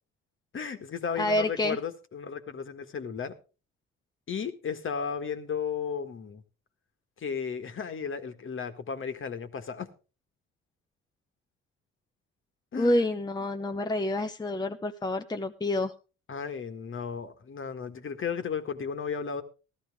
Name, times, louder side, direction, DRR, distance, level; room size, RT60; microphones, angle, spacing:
voice 1, 0.5-3.3 4.3-6.4 7.2-9.9 12.7-13.0 16.3-19.4, left 6 dB, 40° left, 1.6 m, -34 dB
voice 2, 1.2-1.8 12.7-15.9, left 1 dB, 15° left, 0.8 m, -28 dB
14.0 x 13.0 x 3.6 m
supercardioid pair, 75°, 30 cm